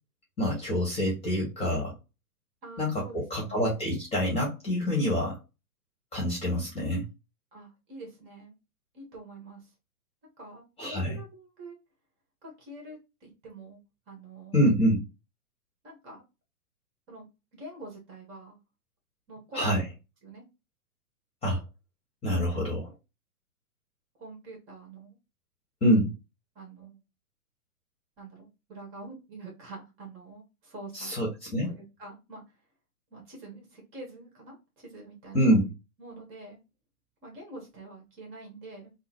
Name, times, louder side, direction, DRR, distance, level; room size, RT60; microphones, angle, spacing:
voice 1, 0.4-1.9 2.8-5.4 6.1-7.0 10.8-11.2 14.5-15.0 19.5-19.8 21.4-21.6 22.2-22.9 25.8-26.1 30.9-31.7 35.3-35.7, equal, 15° left, -3 dB, 1.3 m, -26 dB
voice 2, 2.6-3.8 7.5-8.6 8.9-9.7 10.4-11.7 12.4-14.7 15.8-16.2 17.1-17.3 17.5-18.6 19.3-19.9 20.2-20.4 24.2-25.2 26.5-27.0 28.2-31.1 31.6-32.4 33.1-35.7 36.0-36.6 37.2-38.9, right 2 dB, 25° right, 0 dB, 1.6 m, -46 dB
3.8 x 2.1 x 2.9 m, 0.26 s
hypercardioid pair, 125°, 44 cm